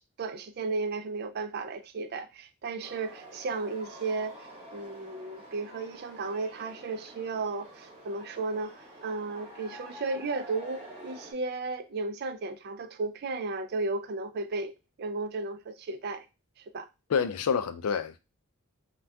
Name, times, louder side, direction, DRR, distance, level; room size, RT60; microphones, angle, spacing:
voice 1, 0.0-16.3 16.6-16.9, right 3 dB, 45° right, 0.3 m, -34 dB
sound 1, 2.8-11.3, right 1 dB, 25° right, 1.0 m, -48 dB
voice 2, 17.1-18.2, left 6 dB, 85° left, 0.4 m, -28 dB
3.4 x 2.2 x 2.6 m
head